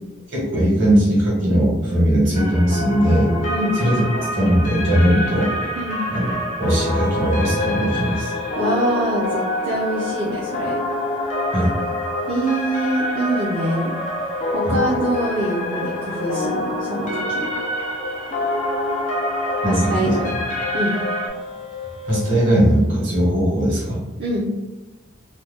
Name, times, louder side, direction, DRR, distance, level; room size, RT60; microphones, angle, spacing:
voice 1, 0.3-3.3 3.8-4.0 4.4-5.5 6.1-6.3 6.6-8.3 11.5-11.7 14.6-14.8 19.6-20.2 22.1-24.0, equal, 70° right, -5 dB, 1.5 m, -19 dB
sound 1, 2.3-21.3, left 1 dB, 35° left, 0.5 m, -26 dB
sound 2, 4.2-4.3 6.8-22.7, left 4 dB, ahead, 0.8 m, -34 dB
voice 2, 8.6-10.8 12.3-13.9 14.5-17.5 19.6-20.3 20.7-21.0 24.2-24.5, right 1 dB, 50° right, -9 dB, 0.6 m, -24 dB
2.8 x 2.3 x 3.4 m, 1.1 s
head